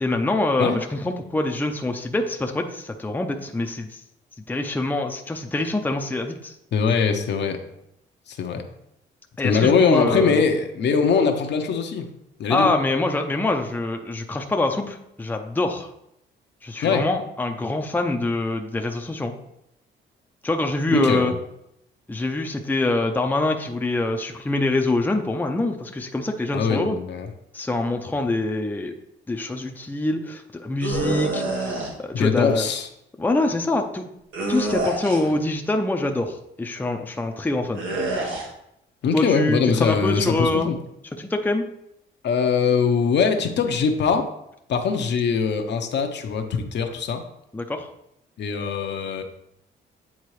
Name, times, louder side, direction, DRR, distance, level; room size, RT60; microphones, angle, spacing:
voice 1, 0.0-4.0 4.5-6.5 9.4-10.4 12.5-15.9 16.6-19.3 20.4-21.3 22.1-27.0 27.5-28.9 29.3-32.7 33.2-34.0 34.5-37.9 39.1-40.7 41.2-41.6 47.5-47.9, left 2 dB, 10° left, 3 dB, 0.6 m, -25 dB
voice 2, 6.7-7.6 8.3-8.6 9.4-12.1 12.4-12.7 16.8-17.0 20.9-21.3 26.5-27.3 32.1-32.9 39.0-40.8 42.2-44.3 44.7-47.2 48.4-49.2, left 5 dB, 60° left, 5 dB, 0.8 m, -22 dB
sound 1, 30.8-31.9 34.3-35.4 37.8-38.5, right 2 dB, 80° right, 1.3 m, -27 dB
8.5 x 3.6 x 3.2 m, 0.79 s
cardioid pair, 90°, 20 cm